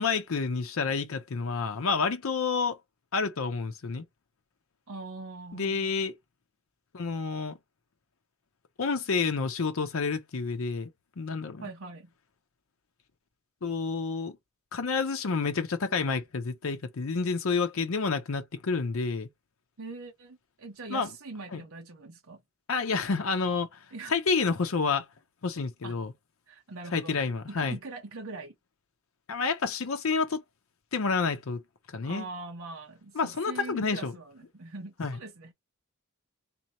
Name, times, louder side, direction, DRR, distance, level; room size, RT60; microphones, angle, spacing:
voice 1, 0.0-2.8 3.1-4.0 5.5-6.1 6.9-7.5 8.8-10.9 11.2-11.6 13.6-14.4 14.7-19.3 20.9-21.1 21.5-21.6 22.7-25.1 25.4-26.1 26.9-27.8 29.3-30.4 30.9-31.6 31.9-32.3 33.1-34.1 35.0-35.2, left 4 dB, 70° left, 0.6 m, -29 dB
voice 2, 4.9-5.9 11.6-12.1 19.8-22.4 23.9-24.1 25.8-26.0 26.5-27.2 27.5-28.5 32.0-35.5, right 3 dB, 75° right, 0.9 m, -42 dB
3.7 x 2.8 x 2.9 m
head